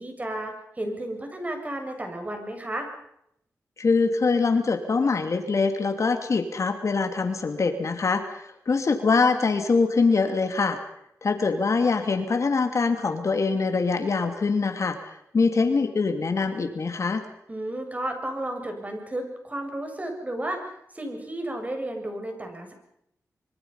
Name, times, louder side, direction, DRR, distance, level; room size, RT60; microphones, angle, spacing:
voice 1, 0.0-2.9 17.5-20.7 20.9-22.7, right 1 dB, 25° right, 4 dB, 7.1 m, -33 dB
voice 2, 3.8-10.8 11.2-15.0 15.3-17.2, left 4 dB, 55° left, 7 dB, 2.8 m, -23 dB
25.0 x 24.0 x 5.6 m, 0.75 s
cardioid pair, 75°, 6 cm